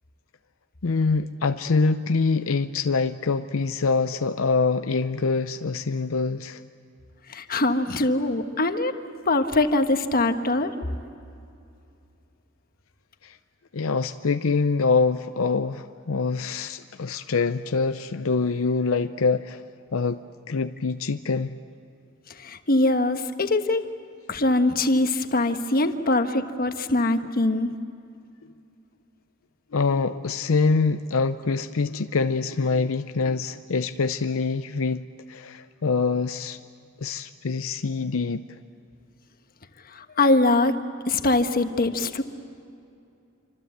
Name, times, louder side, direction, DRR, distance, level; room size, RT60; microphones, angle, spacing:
voice 1, 0.8-6.6 13.2-13.4 13.7-19.7 19.9-21.5 29.7-36.6 37.0-38.4, left 4 dB, 80° left, 9 dB, 0.6 m, -25 dB
voice 2, 7.3-8.9 9.2-10.7 22.4-23.8 24.3-27.7 39.9-40.8 41.1-42.2, left 2 dB, 45° left, 7 dB, 1.3 m, -22 dB
27.0 x 25.5 x 8.0 m, 2.6 s
head